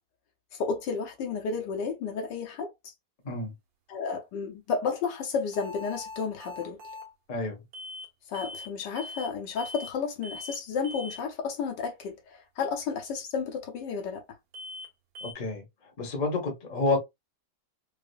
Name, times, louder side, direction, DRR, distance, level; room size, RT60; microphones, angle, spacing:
voice 1, 0.5-2.7 3.9-6.8 8.3-14.2, left 5 dB, 75° left, 1.3 m, -32 dB
sound 1, 5.5-7.1 7.7-8.1 8.3-8.7 9.0-9.3 9.6-9.9 10.2-10.6 10.8-11.2 14.5-14.9 15.2-15.3, left 2 dB, 80° right, 1.6 m, -41 dB
voice 2, 15.2-15.6 16.0-17.0, left 3 dB, 30° left, 0.9 m, -29 dB
4.8 x 2.0 x 2.3 m
omnidirectional pair, 2.0 m